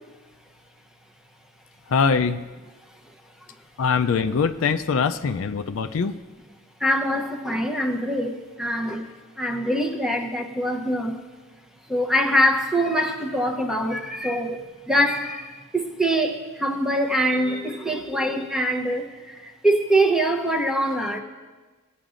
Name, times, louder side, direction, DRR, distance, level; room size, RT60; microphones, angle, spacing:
voice 1, 1.9-2.4 3.8-6.2, left 5 dB, 70° left, 9 dB, 0.4 m, -22 dB
voice 2, 6.8-9.1 9.4-11.2 11.9-21.2, equal, 5° right, 2 dB, 0.7 m, -24 dB
17.5 x 9.0 x 2.5 m, 1.3 s
head